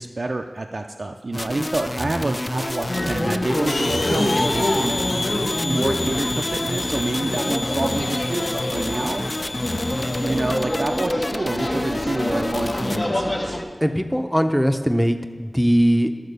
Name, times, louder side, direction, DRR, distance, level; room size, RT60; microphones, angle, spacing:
voice 1, 0.0-5.0 5.6-9.2 10.2-13.6, right 2 dB, 60° right, 3 dB, 0.5 m, -27 dB
sound 1, 1.3-13.0, left 1 dB, 35° left, 0.4 m, -29 dB
sound 2, 2.9-13.6, left 1 dB, 50° left, 1.2 m, -26 dB
sound 3, 3.7-11.1, left 2 dB, 75° left, 0.6 m, -31 dB
voice 2, 13.8-16.1, equal, ahead, 7 dB, 0.7 m, -20 dB
11.5 x 4.3 x 6.7 m, 1.5 s
wide cardioid pair, 45°, 0 cm